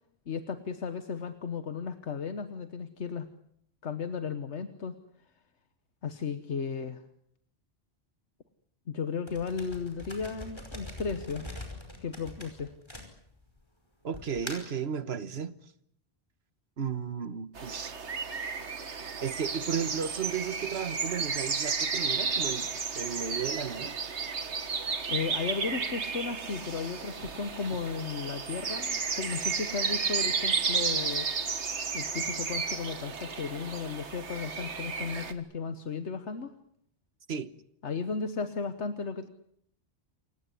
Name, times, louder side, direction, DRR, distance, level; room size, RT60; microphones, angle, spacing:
voice 1, 0.3-3.3 3.8-5.0 6.0-7.0 8.9-11.5 12.0-12.7 25.1-31.3 31.9-36.5 37.8-39.3, left 5 dB, 85° left, 1.5 m, -35 dB
sound 1, 9.3-13.6 14.1-14.8, left 1 dB, 25° left, 5.2 m, -43 dB
voice 2, 14.0-15.5 16.8-18.0 19.2-22.7 22.9-24.0 37.3-37.5, right 7 dB, 65° right, 1.5 m, -34 dB
sound 2, 17.6-35.3, right 5 dB, 85° right, 1.9 m, -33 dB
28.0 x 16.5 x 9.9 m
omnidirectional pair, 1.1 m